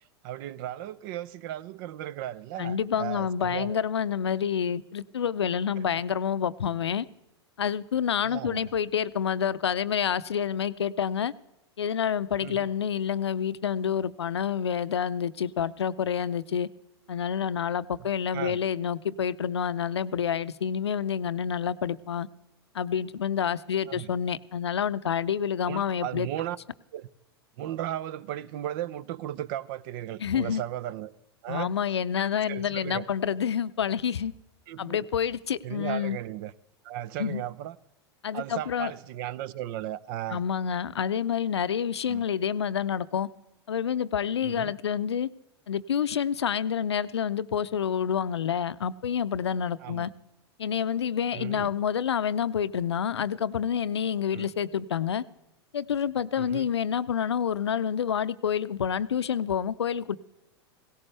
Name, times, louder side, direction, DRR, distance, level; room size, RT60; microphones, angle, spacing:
voice 1, 0.2-3.8 8.2-8.6 12.4-12.7 18.3-18.6 23.9-24.1 25.6-26.6 26.9-27.1 27.6-31.1 31.4-31.7 32.5-33.1 34.7-35.0 35.6-36.5 36.8-37.8 38.3-40.4 42.1-42.2 44.4-44.7 49.8-50.1 51.3-51.7 54.3-54.5 56.4-56.7, right 12 dB, 55° right, 0.6 m, -35 dB
voice 2, 2.6-7.1 7.6-11.3 11.8-16.7 17.1-22.3 22.7-26.3 30.2-30.6 31.5-34.3 34.8-36.2 37.2-37.4 38.2-38.9 40.3-43.3 43.7-45.3 45.7-50.1 50.6-55.2 55.7-60.2, left 8 dB, 80° left, 0.5 m, -28 dB
17.5 x 17.0 x 3.3 m
hypercardioid pair, 95°, 14 cm